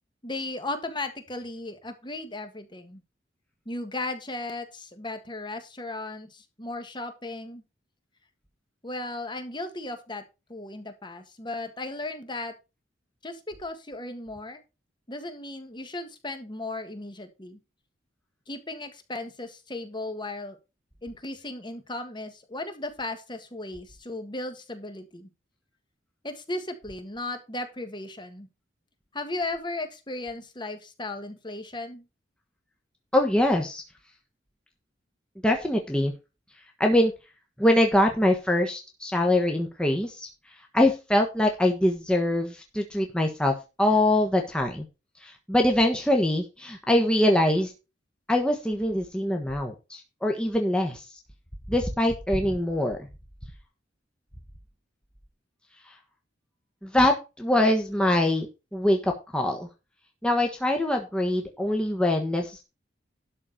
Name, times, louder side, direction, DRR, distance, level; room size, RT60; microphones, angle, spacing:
voice 1, 0.2-3.0 3.6-7.6 8.8-10.2 10.5-12.5 13.2-14.6 15.1-17.6 18.5-20.6 21.0-25.3 26.2-28.5 29.1-32.0, left 2 dB, 25° left, 7 dB, 1.6 m, -36 dB
voice 2, 33.1-33.8 35.4-36.1 36.8-37.1 37.6-40.3 40.7-44.8 45.2-47.7 48.3-51.0 51.7-53.0 56.8-58.5 58.7-59.7 60.2-62.6, left 1 dB, 5° left, 2 dB, 1.3 m, -23 dB
12.0 x 4.3 x 6.5 m, 0.28 s
head